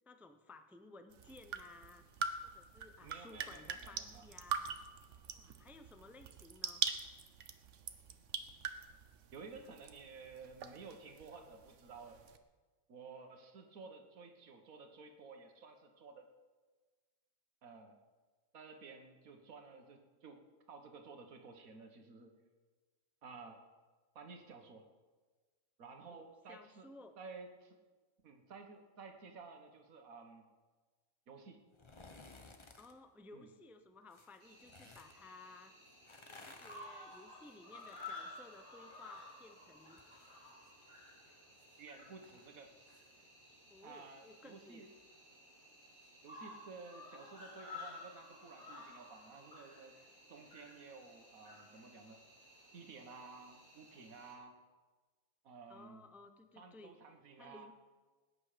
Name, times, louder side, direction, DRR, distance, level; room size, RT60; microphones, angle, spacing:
voice 1, 0.1-2.0 2.4-4.8 5.3-6.8 26.2-27.1 32.8-35.8 36.3-40.0 43.7-44.8 55.7-56.9 57.4-57.7, left 3 dB, ahead, 8 dB, 0.4 m, -57 dB
sound 1, 1.1-12.4, right 6 dB, 60° right, 1.1 m, -44 dB
voice 2, 3.0-4.3 9.3-12.2 12.9-16.3 17.6-18.0 18.5-22.3 23.2-23.6 24.2-24.9 25.8-26.9 27.2-27.8 28.2-30.5 31.3-31.6 33.3-33.5 41.8-42.7 43.8-44.9 46.2-50.0 50.3-52.2 52.7-54.6 55.4-56.1 56.6-57.7, right 4 dB, 75° right, 5 dB, 1.8 m, -53 dB
sound 2, 31.7-32.9 34.1-35.1 35.9-39.4 39.7-43.1 43.4-43.5, left 3 dB, 25° left, 0.8 m, -59 dB
Cricket, 34.4-54.3, left 2 dB, 75° left, 4.3 m, -54 dB
19.5 x 9.6 x 5.0 m, 1.4 s
omnidirectional pair, 1.5 m